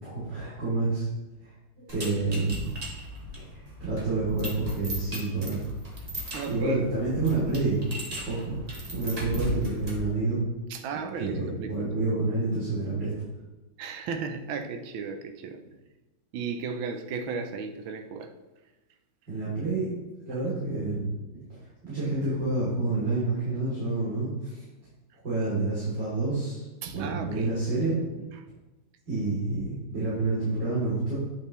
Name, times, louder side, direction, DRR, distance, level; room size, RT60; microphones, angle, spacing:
voice 1, 0.0-1.1 1.4-1.5 1.9-2.7 3.5-5.6 6.5-7.8 8.3-8.5 8.9-10.4 11.1-13.1 19.3-20.0 20.3-21.1 21.8-24.6 25.2-26.6 26.9-28.0 29.1-31.2, right 3 dB, 60° right, -11 dB, 3.7 m, -28 dB
sound 1, 1.9-10.1, equal, 25° right, 1.2 m, -37 dB
voice 2, 6.3-6.9 10.7-12.0 13.8-15.6 16.3-18.3 20.3-20.6 26.8-27.5, right 5 dB, 85° right, 6 dB, 1.5 m, -35 dB
9.9 x 5.9 x 3.1 m, 1.1 s
omnidirectional pair, 2.1 m